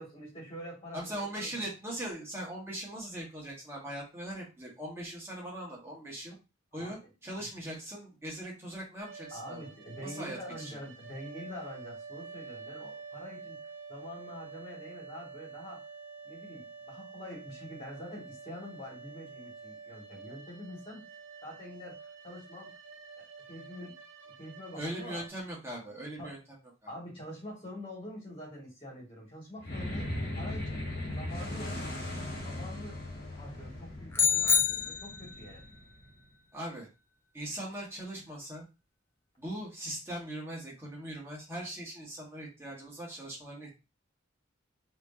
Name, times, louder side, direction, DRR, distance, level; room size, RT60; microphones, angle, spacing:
voice 1, 0.0-1.7 6.8-6.9 7.4-7.5 9.3-13.6 13.9-15.8 16.2-21.0 21.4-22.7 23.2-23.9 24.3-25.2 26.2-26.4 26.9-31.7 32.2-35.7, left 1 dB, 30° left, -3 dB, 2.5 m, -46 dB
voice 2, 0.9-6.4 6.7-9.6 10.0-10.8 24.8-26.4 26.8-26.9 36.5-36.9 37.3-38.6 39.4-43.8, right 1 dB, 15° right, -4 dB, 1.8 m, -40 dB
sound 1, 9.0-25.3, right 5 dB, 70° right, 0.6 m, -48 dB
sound 2, 29.6-36.2, left 1 dB, 50° left, 1.6 m, -38 dB
sound 3, 34.1-35.5, left 7 dB, 10° left, 0.5 m, -27 dB
4.9 x 3.3 x 2.9 m, 0.28 s
head